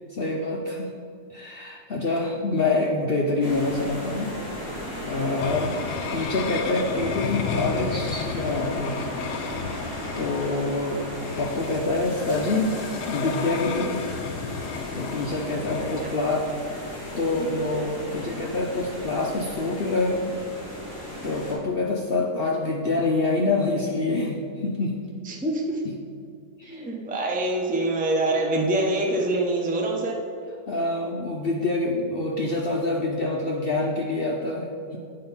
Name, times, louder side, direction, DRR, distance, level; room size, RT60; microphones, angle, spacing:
voice 1, 0.1-0.9 1.3-4.6 5.1-9.0 10.2-12.8 13.1-14.0 14.9-16.5 17.2-20.3 21.2-24.9 25.8-25.9 26.6-26.8 30.7-35.0, left 2 dB, 60° left, -1 dB, 0.6 m, -26 dB
sound 1, 3.4-21.5, left 1 dB, 30° left, 2.2 m, -36 dB
sound 2, 5.4-16.0, left 6 dB, 80° left, 1.2 m, -33 dB
voice 2, 25.3-25.8 26.7-30.1, right 2 dB, 10° right, 0 dB, 0.3 m, -25 dB
8.7 x 3.8 x 5.5 m, 2.3 s
omnidirectional pair, 1.8 m